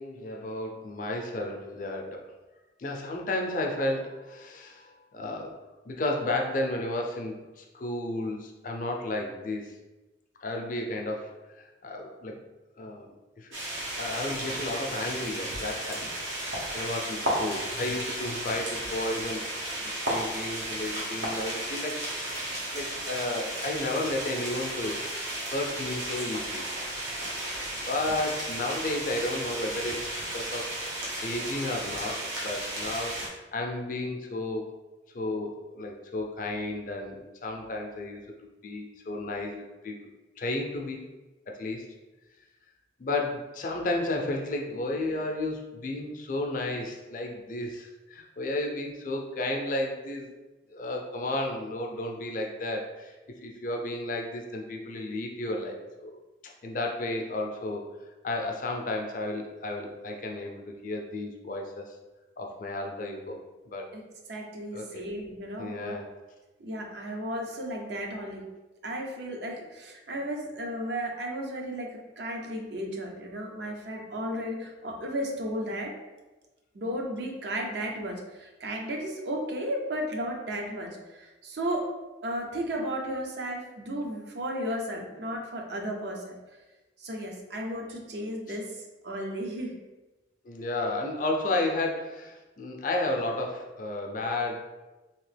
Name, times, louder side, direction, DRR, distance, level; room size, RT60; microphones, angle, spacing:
voice 1, 0.0-2.3 2.8-5.6 5.9-9.7 10.4-11.3 11.5-12.4 12.8-13.6 13.9-16.0 16.7-19.5 20.1-22.0 22.7-25.0 25.5-26.7 27.8-30.7 31.2-33.2 33.5-34.7 35.1-37.2 37.4-38.2 38.6-40.0 40.4-41.0 41.5-41.9 43.0-50.3 50.7-53.1 53.4-56.2 56.6-57.9 58.2-62.0 62.4-63.4 63.7-63.9 64.7-65.1 65.6-66.1 88.5-88.6 90.4-94.7, left 2 dB, 45° left, 1 dB, 0.4 m, -32 dB
sound 1, 13.5-33.3, right 1 dB, 90° right, 0.9 m, -34 dB
voice 2, 64.3-66.0 66.6-68.5 68.8-75.9 76.7-81.9 82.2-86.4 87.0-89.8, equal, 65° right, 1 dB, 0.6 m, -34 dB
2.9 x 2.8 x 3.3 m, 1.1 s
head